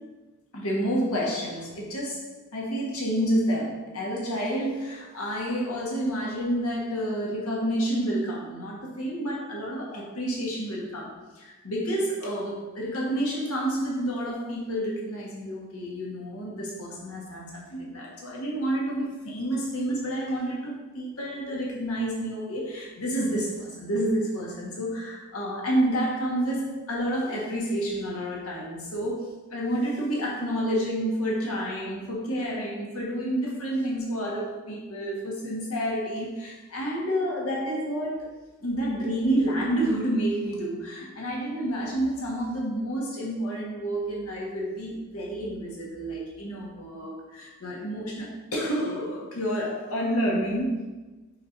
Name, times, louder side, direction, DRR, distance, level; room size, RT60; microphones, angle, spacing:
voice 1, 0.5-2.2 2.5-50.8, right 1 dB, 75° left, -3 dB, 1.6 m, -29 dB
4.8 x 4.3 x 4.6 m, 1.2 s
head